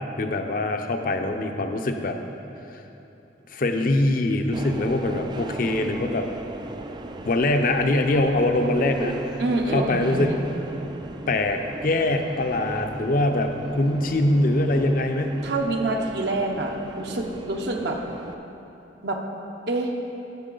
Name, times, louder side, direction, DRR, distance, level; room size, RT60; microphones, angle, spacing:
voice 1, 0.0-2.2 3.5-6.3 7.2-9.3 9.7-10.4 11.3-15.4, left 2 dB, 50° left, 5 dB, 0.6 m, -23 dB
Subway metro underground, 4.5-18.3, right 2 dB, 25° right, 0.3 m, -37 dB
voice 2, 9.4-10.4 15.4-18.0 19.0-19.2 19.7-19.9, right 2 dB, 65° right, 2 dB, 0.8 m, -26 dB
14.0 x 5.8 x 3.9 m, 2.9 s
head